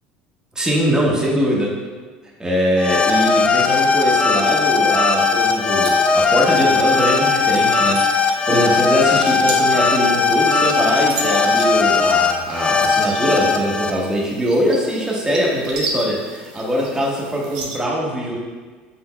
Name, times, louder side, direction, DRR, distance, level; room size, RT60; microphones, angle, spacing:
voice 1, 0.5-1.8 2.4-18.4, equal, 15° right, -3 dB, 1.1 m, -22 dB
sound 1, 2.8-13.9, left 4 dB, 25° left, 0.4 m, -18 dB
sound 2, 5.2-17.8, right 3 dB, 75° right, 0.7 m, -35 dB
5.2 x 4.0 x 2.2 m, 1.4 s
hypercardioid pair, 85°, 5 cm